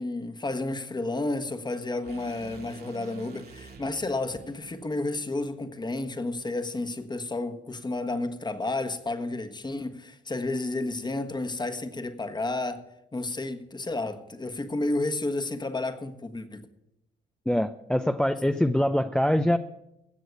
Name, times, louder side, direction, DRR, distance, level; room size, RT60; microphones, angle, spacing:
voice 1, 0.0-12.8 13.1-16.6, left 2 dB, 20° left, 8 dB, 1.3 m, -31 dB
sound 1, 2.0-6.2, right 5 dB, 50° right, 2.0 m, -49 dB
voice 2, 17.5-19.6, left 1 dB, 5° left, 9 dB, 0.5 m, -24 dB
16.0 x 6.4 x 8.2 m, 0.86 s
cardioid pair, 90°, 20 cm